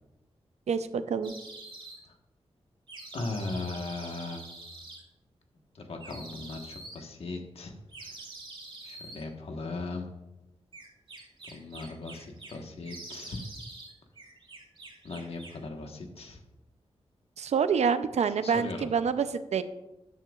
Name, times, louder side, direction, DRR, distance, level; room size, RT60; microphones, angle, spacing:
voice 1, 0.7-1.3 17.4-19.6, right 6 dB, 85° right, 11 dB, 0.6 m, -27 dB
sound 1, 1.2-2.0 2.9-5.0 6.0-7.0 7.9-9.2 10.7-12.6 12.8-13.9 14.2-15.6, right 2 dB, 50° right, 2.7 m, -46 dB
voice 2, 3.1-4.5 5.7-7.7 8.0-8.2 8.8-10.1 11.5-13.5 15.0-16.4 18.4-18.9, left 3 dB, 60° left, 3 dB, 1.3 m, -38 dB
12.5 x 9.7 x 2.4 m, 0.97 s
wide cardioid pair, 170°, 11 cm